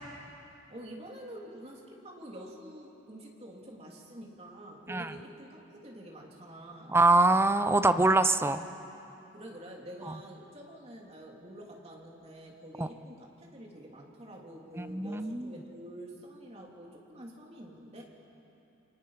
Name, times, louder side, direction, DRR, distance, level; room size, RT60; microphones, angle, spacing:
voice 1, 0.7-6.9 9.2-18.0, right 1 dB, 30° right, -1 dB, 3.2 m, -47 dB
voice 2, 6.9-8.6 12.8-12.9 14.8-15.5, right 2 dB, 10° right, 10 dB, 0.6 m, -24 dB
28.5 x 24.0 x 5.9 m, 3.0 s
head